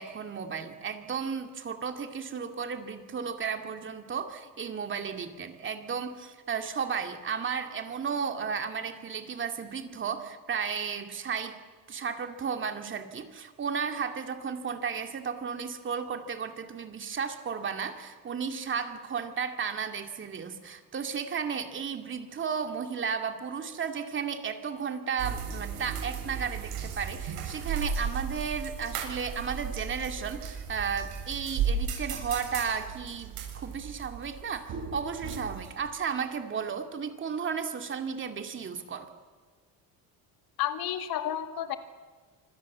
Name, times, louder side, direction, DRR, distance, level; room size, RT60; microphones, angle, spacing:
voice 1, 0.0-11.6 11.9-39.1, right 6 dB, 30° right, 6 dB, 2.4 m, -34 dB
sound 1, 25.2-35.9, right 6 dB, 70° right, 7.4 m, -35 dB
voice 2, 40.6-41.8, left 11 dB, 70° left, 8 dB, 2.3 m, -31 dB
26.0 x 26.0 x 7.5 m, 1.5 s
cardioid pair, 145°, 37 cm